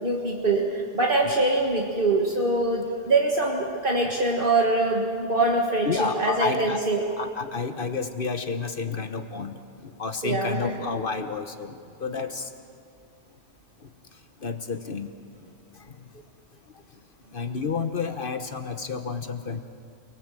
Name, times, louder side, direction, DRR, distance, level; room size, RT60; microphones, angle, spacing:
voice 1, 0.0-7.1 10.2-10.7, right 2 dB, 55° right, 0 dB, 1.8 m, -24 dB
voice 2, 5.8-9.6 9.8-12.5 14.4-15.1 17.3-19.6, left 5 dB, 55° left, 8 dB, 1.2 m, -30 dB
29.0 x 19.5 x 7.6 m, 2.4 s
omnidirectional pair, 1.1 m